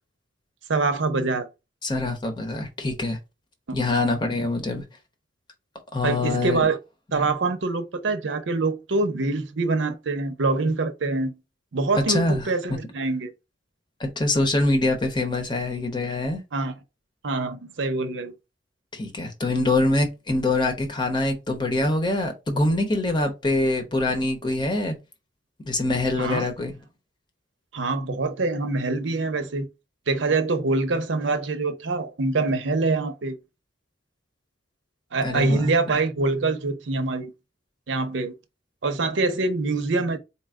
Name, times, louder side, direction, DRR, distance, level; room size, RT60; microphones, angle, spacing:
voice 1, 0.7-1.5 3.8-3.9 6.0-6.8 7.1-11.3 11.7-13.3 16.5-16.7 17.2-18.3 26.2-26.5 27.7-29.7 30.1-33.4 35.1-37.3 37.9-38.3 38.8-40.2, right 3 dB, 80° right, 0.7 m, -25 dB
voice 2, 1.8-3.2 3.7-4.8 5.9-6.6 7.1-7.3 12.1-12.8 14.0-16.4 18.9-25.0 25.6-26.7 35.2-35.7, left 2 dB, 25° left, 0.8 m, -24 dB
4.2 x 2.1 x 3.5 m
head